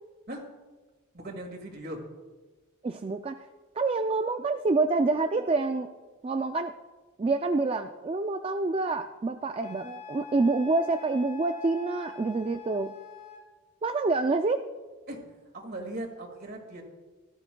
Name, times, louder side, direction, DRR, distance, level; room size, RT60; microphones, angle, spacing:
voice 1, 1.1-2.0 15.1-16.8, right 1 dB, 50° right, 3 dB, 2.1 m, -39 dB
voice 2, 2.8-3.5 3.8-5.9 6.2-6.7 7.2-13.0 13.8-14.7, right 3 dB, 30° right, 7 dB, 0.3 m, -27 dB
Wind instrument woodwind instrument, 9.6-13.5, left 4 dB, 20° left, 2.6 m, -45 dB
17.5 x 12.5 x 2.3 m, 1.3 s
head